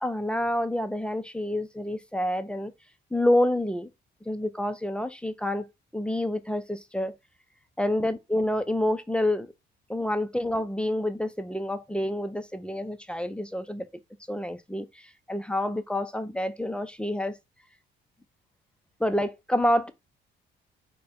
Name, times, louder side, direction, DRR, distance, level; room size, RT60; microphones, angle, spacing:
voice 1, 0.0-2.7 3.1-3.9 4.3-5.7 5.9-7.1 7.8-9.5 9.9-13.9 14.3-17.4 19.0-19.9, left 1 dB, 5° left, 0.5 m, -28 dB
3.9 x 2.2 x 3.5 m
cardioid pair, 90°, 20 cm